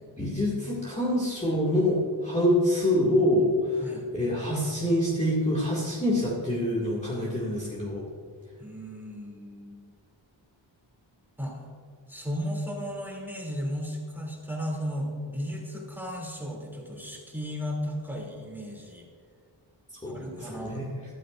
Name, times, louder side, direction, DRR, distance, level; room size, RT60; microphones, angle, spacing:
voice 1, 0.2-3.8 4.1-8.0 20.0-20.8, left 1 dB, 15° left, -7 dB, 2.3 m, -26 dB
voice 2, 8.6-9.9 11.4-11.6 12.1-19.1 20.0-20.9, equal, 5° right, -3 dB, 3.1 m, -35 dB
13.5 x 13.0 x 2.6 m, 2.2 s
wide cardioid pair, 65°, 47 cm